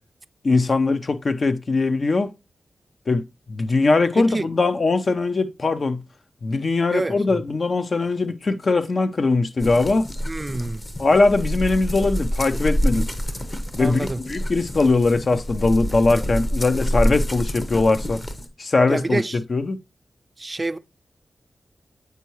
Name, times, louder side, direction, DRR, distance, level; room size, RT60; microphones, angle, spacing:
voice 1, 0.4-2.3 3.1-3.2 3.5-6.0 6.4-10.1 11.0-13.1 13.8-18.2 18.6-19.8, left 3 dB, 60° left, 0.5 m, -21 dB
voice 2, 4.1-4.5 6.9-7.4 10.3-10.8 13.8-14.2 18.9-19.4 20.4-20.8, right 2 dB, 35° right, 0.3 m, -27 dB
sound 1, 9.6-18.5, equal, 35° left, 0.9 m, -27 dB
8.1 x 4.6 x 3.0 m
cardioid pair, 50°, 0 cm